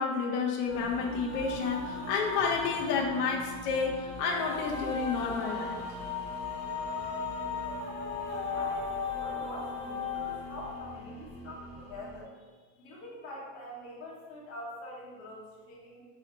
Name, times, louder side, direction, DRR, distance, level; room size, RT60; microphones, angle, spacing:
voice 1, 0.0-5.8, left 5 dB, 90° left, -1 dB, 0.8 m, -30 dB
sound 1, 0.7-12.2, left 4 dB, 15° left, 1.5 m, -37 dB
voice 2, 8.5-12.3 12.8-16.0, left 1 dB, 35° left, -4 dB, 1.1 m, -45 dB
3.3 x 2.8 x 3.9 m, 1.3 s
supercardioid pair, 150°, 48 cm